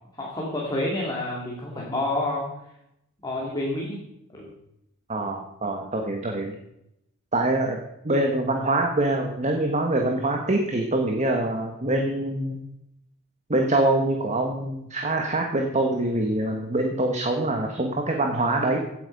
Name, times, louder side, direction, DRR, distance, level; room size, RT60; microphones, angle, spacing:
voice 1, 0.1-2.5 3.2-4.0 4.3-4.5, left 1 dB, 20° left, -4 dB, 2.5 m, -28 dB
voice 2, 5.1-6.5 7.3-7.8 8.0-12.7 13.5-18.8, right 2 dB, 35° right, 2 dB, 1.4 m, -24 dB
16.5 x 8.2 x 5.4 m, 0.82 s
head